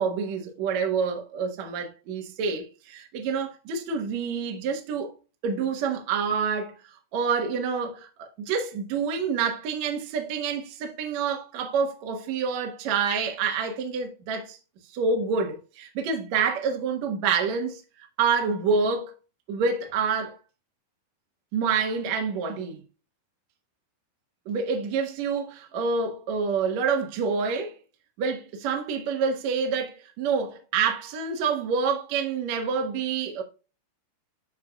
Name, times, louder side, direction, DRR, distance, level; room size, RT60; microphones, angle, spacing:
voice 1, 0.0-5.1 5.4-14.6 14.9-19.1 19.5-20.4 21.5-22.8 24.4-27.8 28.2-33.4, right 5 dB, 70° right, 1.7 m, -27 dB
13.0 x 4.5 x 2.3 m
omnidirectional pair, 5.6 m